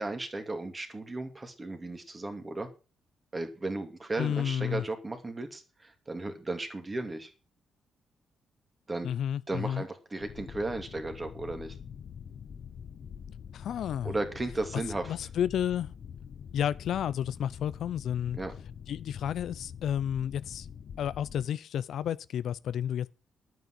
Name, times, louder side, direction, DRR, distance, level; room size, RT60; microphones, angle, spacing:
voice 1, 0.0-2.7 3.3-7.3 8.9-9.1 9.5-11.8 14.0-15.1 18.3-18.6, right 2 dB, 20° right, 2.5 m, -35 dB
voice 2, 4.2-4.8 9.0-9.8 13.5-14.1 15.1-15.9 16.5-18.4 18.9-20.7 21.0-23.1, left 9 dB, 70° left, 0.6 m, -31 dB
sound 1, 10.2-21.5, left 7 dB, 55° left, 1.0 m, -45 dB
11.0 x 9.0 x 6.1 m
cardioid pair, 130°, 0 cm